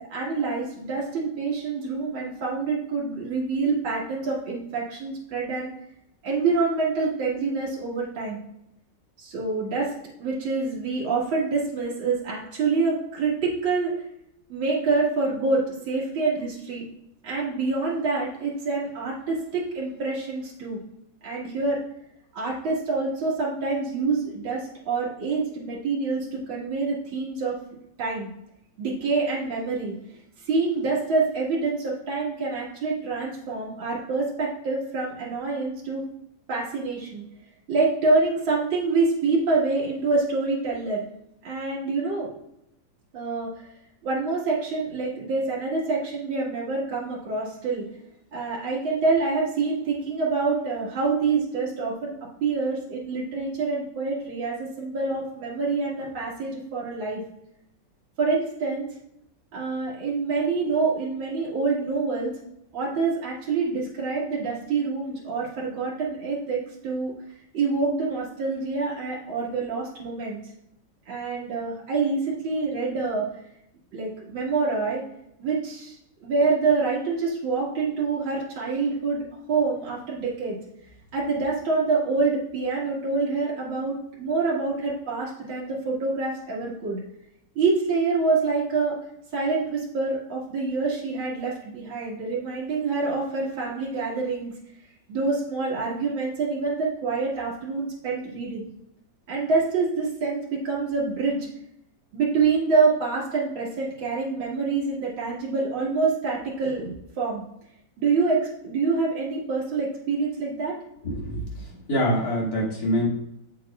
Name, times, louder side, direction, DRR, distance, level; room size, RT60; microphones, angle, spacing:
voice 1, 0.1-5.7 6.2-8.4 9.2-9.9 10.2-14.0 14.5-16.8 17.2-20.8 21.2-21.8 22.3-27.6 28.0-28.3 28.8-29.9 30.4-36.0 36.5-37.3 37.7-41.0 41.4-42.3 43.1-43.5 44.0-47.9 48.3-52.1 52.4-57.2 58.2-58.9 59.5-62.3 62.7-67.1 67.5-70.4 71.1-73.3 73.9-75.0 75.4-80.6 81.1-87.0 87.6-89.0 89.3-94.5 95.1-98.7 99.3-101.5 102.1-107.4 108.0-110.8, right 4 dB, 70° right, -6 dB, 2.7 m, -26 dB
voice 2, 111.9-113.1, equal, 45° left, -4 dB, 2.7 m, -24 dB
8.1 x 7.8 x 2.4 m, 0.80 s
omnidirectional pair, 2.3 m